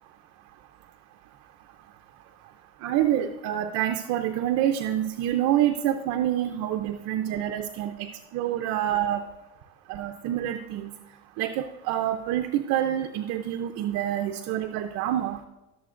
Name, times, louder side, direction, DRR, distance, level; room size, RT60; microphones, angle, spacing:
voice 1, 2.8-9.2 9.9-10.9 11.4-15.5, right 11 dB, 60° right, 5 dB, 0.7 m, -27 dB
17.0 x 7.1 x 2.5 m, 1.1 s
supercardioid pair, 125°, 31 cm